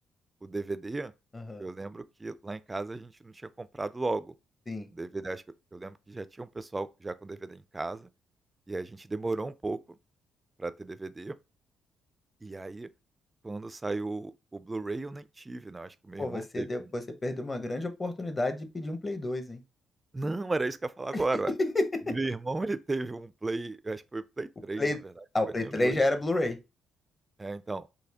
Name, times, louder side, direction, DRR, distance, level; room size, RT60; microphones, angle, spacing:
voice 1, 0.4-1.1 1.6-4.3 4.9-5.4 5.7-8.1 8.7-9.8 10.6-11.4 12.4-12.9 13.4-16.9 20.1-21.5 22.1-24.9 25.6-26.0 27.4-27.9, right 2 dB, 20° right, 0.3 m, -35 dB
voice 2, 1.3-1.7 4.7-4.9 16.2-19.6 21.6-22.1 24.8-25.0 25.3-26.6, left 2 dB, 25° left, 0.7 m, -30 dB
4.0 x 2.6 x 2.8 m
cardioid pair, 90°, 0 cm